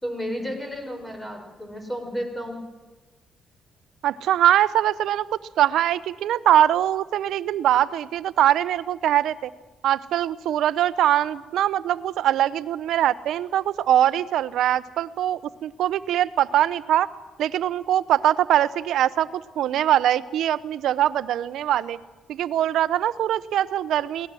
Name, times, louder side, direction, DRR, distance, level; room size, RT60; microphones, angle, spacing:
voice 1, 0.0-2.6, equal, 10° left, 4 dB, 5.9 m, -32 dB
voice 2, 4.0-5.3 5.6-9.5 9.8-17.1 17.4-19.3 19.6-22.0 22.3-24.3, right 11 dB, 80° right, 16 dB, 0.9 m, -22 dB
22.5 x 18.5 x 7.7 m, 1.2 s
cardioid pair, 90°, 0 cm